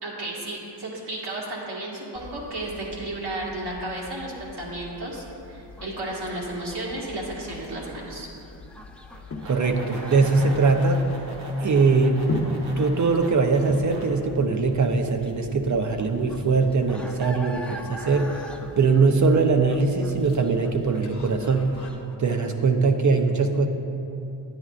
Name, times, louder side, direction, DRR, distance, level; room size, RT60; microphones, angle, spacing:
voice 1, 0.0-8.3, right 1 dB, 70° right, -5 dB, 2.0 m, -33 dB
sound 1, 2.1-21.9, left 2 dB, 35° left, 0.9 m, -40 dB
sound 2, 5.1-22.1, left 1 dB, 5° left, 0.3 m, -45 dB
sound 3, 9.1-14.1, right 1 dB, 90° right, 1.3 m, -41 dB
voice 2, 9.4-11.0 11.6-12.3 12.8-18.5 18.8-21.8 22.2-23.7, right 4 dB, 45° right, 5 dB, 0.7 m, -21 dB
10.0 x 9.5 x 2.4 m, 2.8 s
cardioid pair, 100°, 42 cm